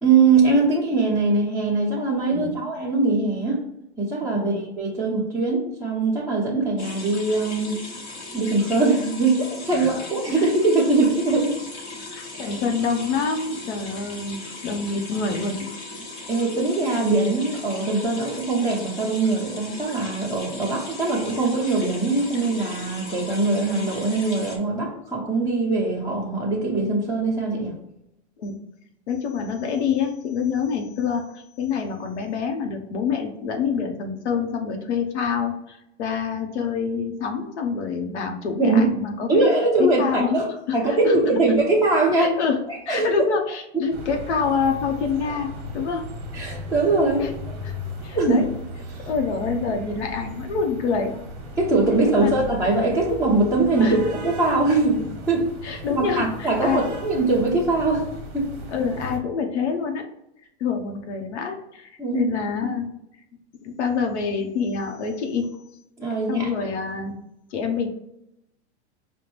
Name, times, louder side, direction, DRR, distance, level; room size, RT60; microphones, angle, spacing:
voice 1, 0.0-3.6 4.0-7.8 8.3-11.5 12.4-12.6 16.3-27.7 38.6-38.8 39.3-42.4 42.7-43.1 43.7-43.8 46.3-47.2 48.1-48.4 51.6-58.1 58.3-58.5 62.0-62.3 66.0-66.7, right 3 dB, 5° left, -9 dB, 0.9 m, -22 dB
sound 1, 6.8-24.6, left 2 dB, 30° left, 0.9 m, -38 dB
voice 2, 12.0-14.4 14.6-15.7 28.4-28.6 29.1-39.5 39.8-40.4 40.7-41.2 42.2-42.6 42.9-46.1 47.2-47.3 47.6-47.7 48.0-48.5 49.1-51.1 51.9-52.3 53.8-54.0 55.6-56.9 58.7-60.1 60.6-62.9 63.6-65.5 66.3-67.1 67.5-67.9, left 5 dB, 80° left, 3 dB, 0.8 m, -26 dB
sound 2, 43.9-59.2, equal, 40° right, 1.0 m, -36 dB
5.1 x 2.2 x 3.1 m, 0.83 s
supercardioid pair, 140°, 34 cm